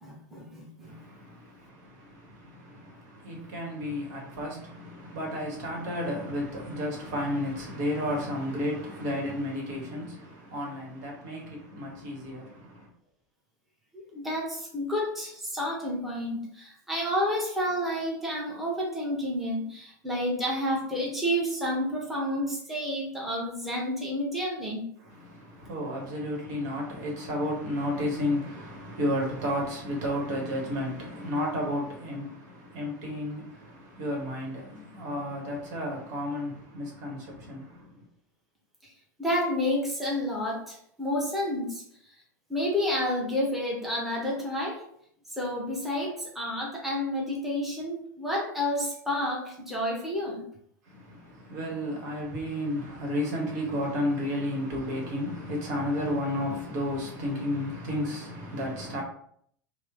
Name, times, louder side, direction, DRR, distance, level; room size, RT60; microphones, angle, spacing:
voice 1, 0.0-0.9 13.9-24.8 39.2-41.8 42.5-44.8 45.3-50.4, left 1 dB, ahead, 0.9 m, -30 dB
voice 2, 0.8-12.9 25.0-38.0 50.9-59.0, left 1 dB, 60° right, 1.1 m, -32 dB
3.0 x 2.0 x 3.5 m
figure-of-eight pair, 85°, 11 cm